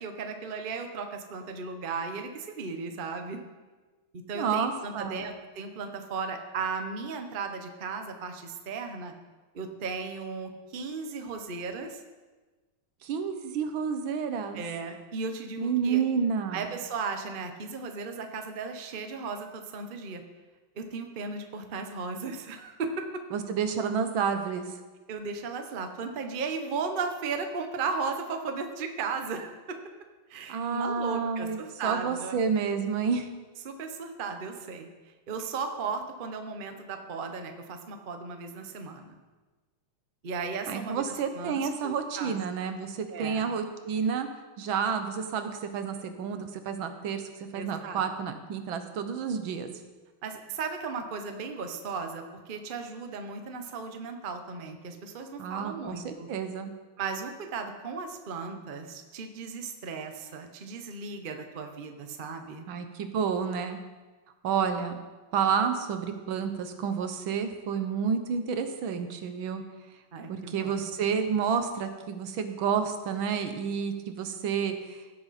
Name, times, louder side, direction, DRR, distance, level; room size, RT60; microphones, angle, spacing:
voice 1, 0.0-3.4 4.3-9.1 9.5-12.0 14.5-16.0 16.5-20.2 20.7-23.1 25.1-29.8 30.3-32.4 33.6-34.9 35.3-39.2 40.2-42.3 43.1-43.5 47.5-48.1 50.2-56.3 57.0-62.6 70.1-70.8, right 4 dB, 40° right, 5 dB, 0.7 m, -36 dB
voice 2, 4.3-5.3 13.0-14.6 15.6-16.7 23.3-24.7 30.5-33.3 40.7-44.3 44.6-47.2 47.5-49.7 55.4-56.7 62.7-63.8 64.4-65.0 65.3-69.6 70.3-75.0, right 6 dB, 70° right, 8 dB, 1.7 m, -30 dB
16.5 x 7.7 x 4.2 m, 1.3 s
omnidirectional pair, 2.3 m